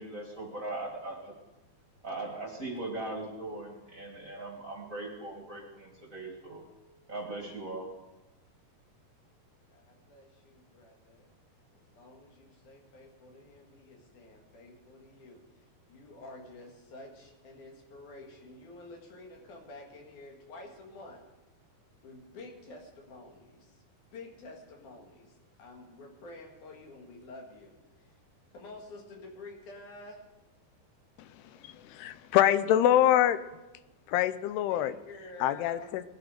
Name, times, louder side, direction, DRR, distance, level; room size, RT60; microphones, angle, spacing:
voice 1, 0.0-1.3 2.0-6.6 7.1-7.9, right 2 dB, 35° right, -1 dB, 1.3 m, -39 dB
voice 2, 9.7-11.3 11.7-15.4 15.9-21.2 22.0-23.8 24.1-25.3 25.6-28.2 28.5-30.2 34.7-35.9, left 2 dB, 55° left, 1 dB, 3.1 m, -49 dB
voice 3, 31.6-33.4 34.1-34.9 35.4-36.0, left 11 dB, 85° left, 14 dB, 2.6 m, -25 dB
20.0 x 11.0 x 5.0 m, 1.1 s
omnidirectional pair, 4.6 m